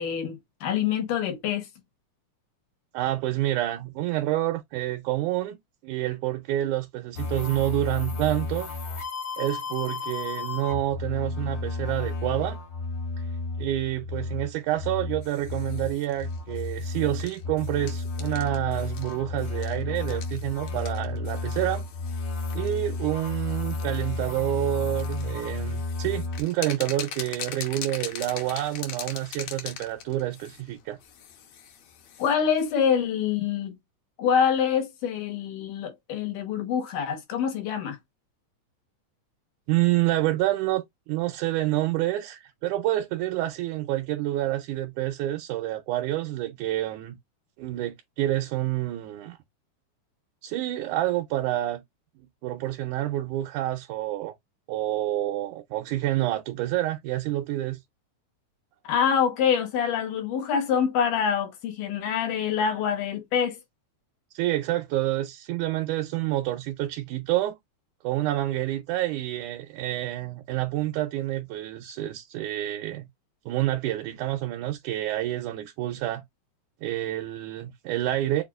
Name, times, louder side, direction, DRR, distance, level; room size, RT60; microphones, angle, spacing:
voice 1, 0.0-1.7 32.2-33.8 34.2-38.0 58.8-63.6, left 7 dB, 85° left, 2.7 m, -25 dB
voice 2, 2.9-5.6 5.8-8.7 9.4-12.6 13.6-21.9 22.5-31.0 39.7-47.2 47.6-49.4 50.4-51.8 52.4-54.3 54.7-57.8 64.3-67.6 68.0-73.1 73.5-76.2 76.8-78.4, right 14 dB, 80° right, 2.0 m, -28 dB
sound 1, 7.2-26.4, left 3 dB, 50° left, 1.2 m, -32 dB
sound 2, 15.2-32.7, left 8 dB, 70° left, 1.9 m, -43 dB
6.5 x 2.3 x 2.4 m
omnidirectional pair, 3.6 m